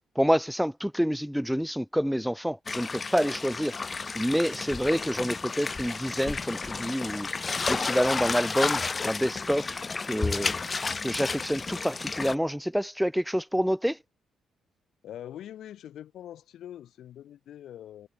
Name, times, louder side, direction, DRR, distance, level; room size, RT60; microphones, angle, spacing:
voice 1, 0.1-3.7 4.1-7.3 7.7-9.8 10.1-10.5 11.0-14.0, equal, ahead, 0.9 m, -27 dB
sound 1, 2.7-12.4, left 4 dB, 30° left, 0.6 m, -32 dB
voice 2, 15.0-18.1, left 11 dB, 75° left, 5.7 m, -43 dB
cardioid pair, 90°, 0 cm